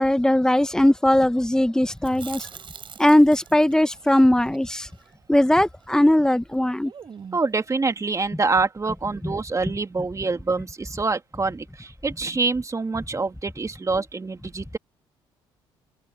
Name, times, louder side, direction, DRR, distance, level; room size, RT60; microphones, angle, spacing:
voice 1, 0.0-2.4 3.0-4.9 5.3-6.9 9.2-9.3, left 1 dB, 5° left, 1.3 m, -19 dB
Chewing mastication, 2.0-6.2 6.4-6.5 6.8-7.6, right 6 dB, 45° right, 5.4 m, -43 dB
voice 2, 7.3-14.8, right 3 dB, 25° right, 2.6 m, -26 dB
hypercardioid pair, 60°, 12 cm